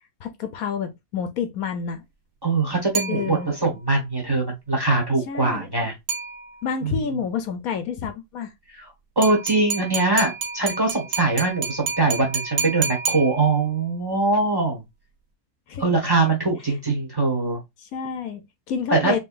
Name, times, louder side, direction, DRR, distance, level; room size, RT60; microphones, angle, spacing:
voice 1, 0.2-2.0 3.1-3.5 5.3-5.7 6.6-8.5 15.7-15.8 16.7-16.8 17.8-19.2, left 6 dB, 75° left, 1.1 m, -29 dB
voice 2, 2.4-5.9 6.8-7.0 8.7-8.9 9.1-14.8 15.8-17.6 18.9-19.2, right 3 dB, 15° right, 1.4 m, -22 dB
sound 1, 2.9-3.8 6.1-6.8 9.2-13.8, right 5 dB, 75° right, 1.5 m, -30 dB
3.7 x 3.4 x 2.4 m
omnidirectional pair, 1.6 m